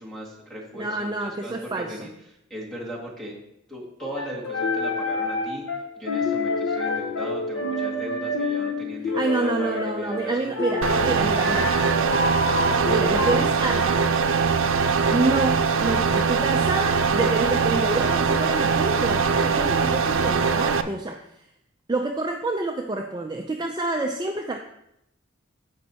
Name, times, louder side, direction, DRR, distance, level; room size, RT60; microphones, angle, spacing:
voice 1, 0.0-2.1 2.5-3.3 3.7-5.6 6.0-11.4 12.7-13.3, equal, 5° left, -3 dB, 2.0 m, -38 dB
voice 2, 0.7-2.1 9.1-11.8 12.9-14.0 15.1-21.4 21.9-24.6, right 2 dB, 20° right, 3 dB, 0.4 m, -28 dB
sound 1, 4.0-13.4, left 2 dB, 75° left, 1.1 m, -28 dB
sound 2, 10.8-20.8, right 5 dB, 90° right, 0.6 m, -22 dB
14.5 x 5.3 x 2.9 m, 0.79 s
head